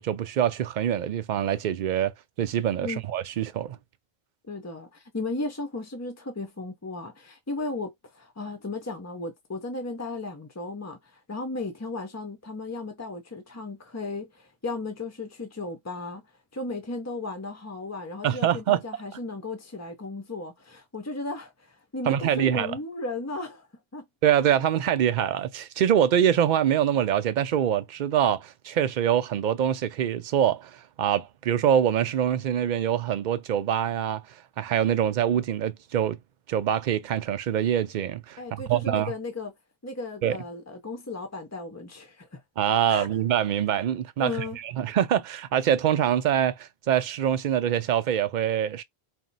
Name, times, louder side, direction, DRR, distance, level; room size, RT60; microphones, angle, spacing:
voice 1, 0.0-2.1 2.4-3.8 18.2-18.8 22.1-22.7 24.2-30.7 31.0-34.2 34.6-36.2 36.5-39.1 40.2-40.4 42.6-44.3 44.6-48.8, right 10 dB, 55° right, 0.6 m, -24 dB
voice 2, 4.5-16.2 16.5-23.7 23.9-24.0 38.4-39.5 39.8-42.4 42.9-43.1 44.2-44.6, left 2 dB, 25° left, 0.4 m, -35 dB
4.3 x 2.0 x 3.9 m
omnidirectional pair, 1.0 m